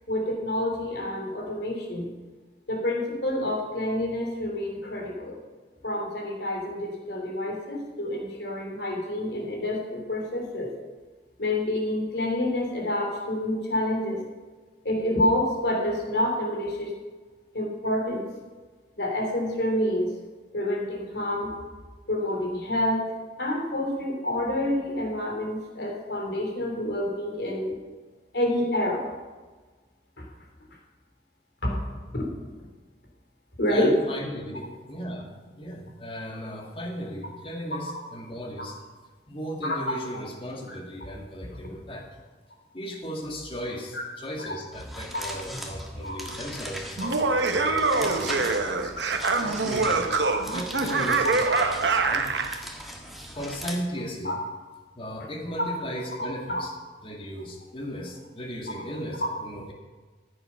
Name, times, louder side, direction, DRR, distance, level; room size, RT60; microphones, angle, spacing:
voice 1, 0.1-2.1 2.7-5.4 5.8-10.7 11.4-14.2 14.8-16.9 17.5-18.3 19.0-20.1 20.5-21.5 22.1-23.0 23.4-27.8 28.3-29.0 30.2-30.3 31.6-32.3 33.6-34.0 39.6-39.8 40.7-40.8 43.9-44.0 46.0-46.2 47.3-47.4 48.1-48.6 50.2-50.3 51.2-51.5 54.2-54.3 56.5-56.6, left 1 dB, 70° left, 0 dB, 3.2 m, -28 dB
voice 2, 33.7-35.3 35.6-38.8 39.3-42.1 42.7-48.9 49.4-50.2 50.4-52.3 53.3-54.4 55.0-56.7 57.0-59.7, equal, 30° left, 1 dB, 2.0 m, -36 dB
sound 1, 44.7-53.8, equal, ahead, 1.4 m, -40 dB
Laughter, 47.0-52.6, right 3 dB, 80° right, 1.0 m, -24 dB
14.5 x 8.4 x 5.8 m, 1.3 s
head